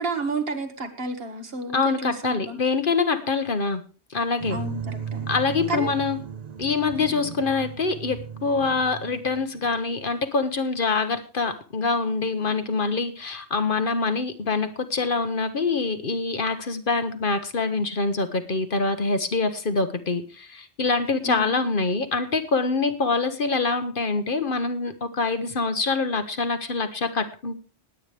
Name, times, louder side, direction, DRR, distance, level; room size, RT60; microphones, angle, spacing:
voice 1, 0.0-2.6 4.5-5.3 5.7-5.9 7.0-7.1 21.2-21.6, right 2 dB, 55° right, 5 dB, 1.9 m, -31 dB
voice 2, 1.7-3.8 4.1-4.6 5.3-6.2 6.6-27.6, left 4 dB, 50° left, 9 dB, 1.2 m, -25 dB
sound 1, 4.4-9.8, right 7 dB, 40° right, 0.8 m, -36 dB
19.5 x 8.9 x 3.3 m, 0.35 s
omnidirectional pair, 1.2 m